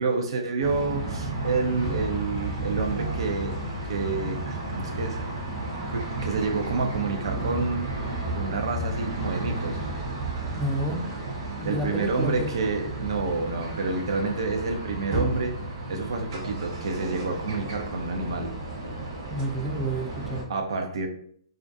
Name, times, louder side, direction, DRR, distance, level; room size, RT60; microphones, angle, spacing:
voice 1, 0.0-3.6 3.8-5.2 5.9-7.9 8.3-9.8 11.6-15.5 15.9-18.5 20.5-21.1, right 3 dB, 70° right, 4 dB, 0.5 m, -29 dB
sound 1, 0.6-20.4, right 2 dB, 50° right, 0.9 m, -32 dB
voice 2, 10.5-11.0 11.6-12.5 19.3-20.5, right 1 dB, 5° right, -1 dB, 0.5 m, -30 dB
2.4 x 2.2 x 2.5 m, 0.63 s
hypercardioid pair, 140°, 3 cm